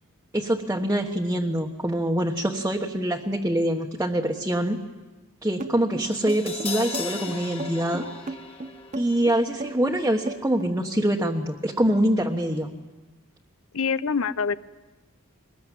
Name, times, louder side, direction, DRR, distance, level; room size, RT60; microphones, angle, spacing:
voice 1, 0.3-4.8 5.4-8.0 8.9-12.7, right 1 dB, 10° right, -1 dB, 1.3 m, -24 dB
sound 1, 5.6-10.8, right 2 dB, 35° right, 0.8 m, -35 dB
Crash cymbal, 6.1-12.3 12.5-12.7, left 4 dB, 25° left, 2.2 m, -39 dB
voice 2, 13.7-14.6, left 5 dB, 70° left, 15 dB, 0.7 m, -25 dB
23.0 x 20.5 x 9.2 m, 1.2 s
head